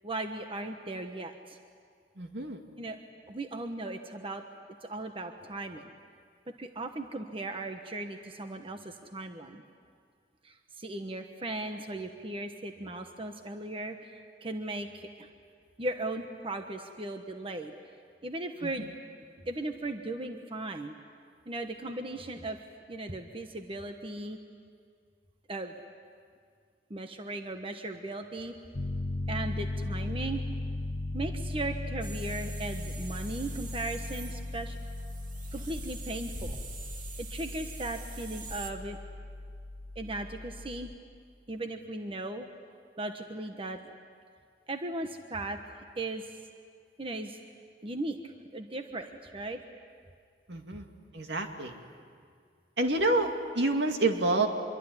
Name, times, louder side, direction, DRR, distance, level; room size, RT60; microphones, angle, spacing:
voice 1, 0.0-1.6 2.8-3.0 3.3-4.4 4.8-5.8 6.6-9.6 10.4-15.3 15.8-17.7 18.2-18.9 19.4-20.9 21.5-22.6 22.9-24.4 25.5-25.7 26.9-28.5 29.3-30.4 31.1-34.8 35.5-36.6 37.2-39.0 39.9-40.9 41.5-42.5 43.0-43.8 44.7-45.6 46.0-46.2 47.0-47.4 47.8-49.6, right 2 dB, 30° right, 5 dB, 1.2 m, -37 dB
voice 2, 2.2-2.6 18.6-18.9 50.5-50.9 51.1-51.7 52.8-54.5, right 2 dB, 75° right, 4 dB, 2.4 m, -28 dB
Piano, 28.7-41.0, left 2 dB, 40° left, 0.9 m, -37 dB
sound 1, 32.0-38.7, right 4 dB, 50° right, 2.3 m, -45 dB
26.0 x 23.0 x 9.8 m, 2.1 s
head